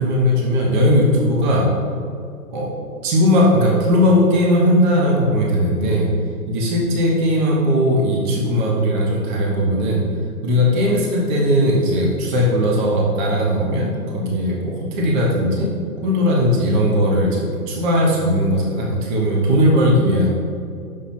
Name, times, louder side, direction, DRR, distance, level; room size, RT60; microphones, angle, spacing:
voice 1, 0.0-1.7 2.5-2.7 3.0-6.1 6.5-10.0 10.4-15.7 16.0-20.3, equal, 30° right, -3 dB, 1.2 m, -18 dB
6.8 x 5.8 x 4.4 m, 2.4 s
hypercardioid pair, 145°, 46 cm